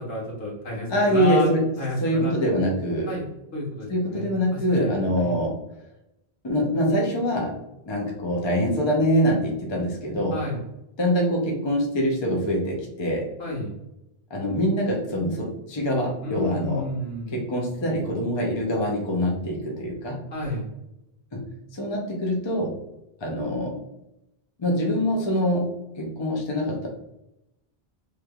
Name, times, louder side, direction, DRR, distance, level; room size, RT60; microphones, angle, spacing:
voice 1, 0.0-1.5 1.8-2.3 3.1-3.2 3.5-4.9 5.2-5.4 10.3-10.6 13.4-13.7 16.2-17.4 20.3-20.7, left 1 dB, 75° left, -4 dB, 1.5 m, -31 dB
voice 2, 0.9-1.6 2.0-3.1 3.9-5.6 6.4-7.5 7.9-10.4 11.0-13.3 14.3-16.9 17.3-20.3 21.3-22.7 23.2-23.8 24.6-26.9, equal, 30° left, 0 dB, 0.7 m, -24 dB
3.2 x 3.2 x 2.3 m, 0.87 s
omnidirectional pair, 1.1 m